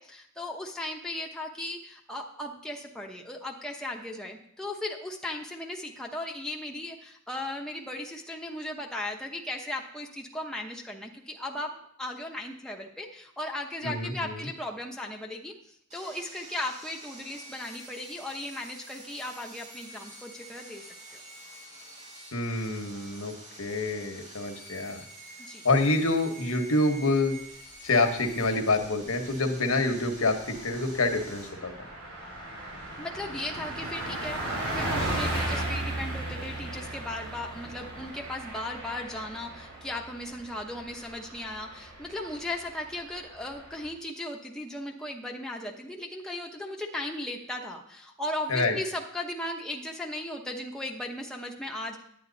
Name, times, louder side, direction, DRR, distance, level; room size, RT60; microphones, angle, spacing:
voice 1, 0.0-15.5 15.9-20.8 21.1-21.2 25.4-25.6 33.0-52.0, left 1 dB, 5° left, 0 dB, 0.9 m, -37 dB
voice 2, 13.8-14.5 22.3-25.0 25.6-27.4 27.8-31.7 48.5-48.8, left 2 dB, 85° left, 5 dB, 1.2 m, -27 dB
Sawing, 15.9-31.5, right 1 dB, 35° right, 4.3 m, -47 dB
Car passing by, 28.7-28.8 29.2-29.3 29.6-43.9, right 1 dB, 75° right, 4.1 m, -36 dB
9.6 x 9.3 x 4.0 m, 0.70 s
head